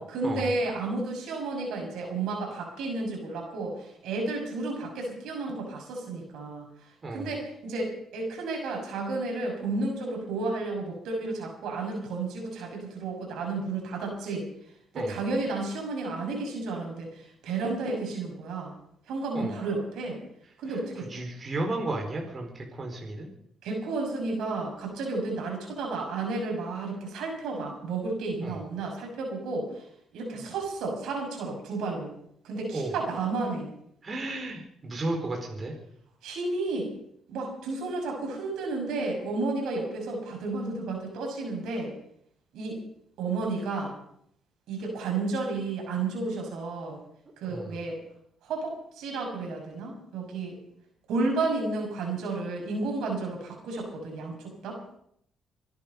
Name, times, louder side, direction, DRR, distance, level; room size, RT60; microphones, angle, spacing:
voice 1, 0.0-6.7 7.1-14.5 14.9-18.7 19.1-20.2 20.6-21.1 23.6-29.7 30.1-32.1 32.4-33.7 36.2-36.9 37.3-41.9 42.5-42.8 43.2-43.9 44.7-47.0 47.4-48.0 48.4-50.6 51.1-54.8, right 3 dB, 85° right, 1 dB, 6.5 m, -32 dB
voice 2, 21.1-23.3 28.4-28.6 32.7-32.9 34.0-35.7 47.5-47.8, right 2 dB, 35° right, 1 dB, 4.6 m, -33 dB
25.0 x 10.5 x 5.5 m, 0.70 s
cardioid pair, 90°, 0 cm